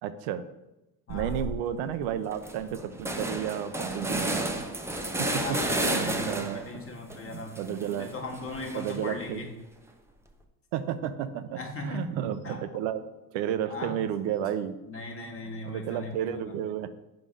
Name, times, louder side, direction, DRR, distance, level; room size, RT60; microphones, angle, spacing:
voice 1, 0.0-0.4 1.1-4.6 5.2-5.4 5.8-6.8 7.2-8.1 8.7-9.4 10.7-13.0 13.3-14.8 15.4-16.9, right 9 dB, 75° right, 11 dB, 0.6 m, -32 dB
voice 2, 1.1-1.4 5.1-7.6 8.0-9.5 11.5-12.2 12.4-12.6 13.7-13.9 14.9-16.5, left 2 dB, 30° left, 2 dB, 1.3 m, -38 dB
sound 1, 1.1-1.6 2.0-2.1 2.3-6.7 7.1-9.2, right 1 dB, 5° right, 0.6 m, -32 dB
4.8 x 3.8 x 5.3 m, 0.97 s
supercardioid pair, 90°, 46 cm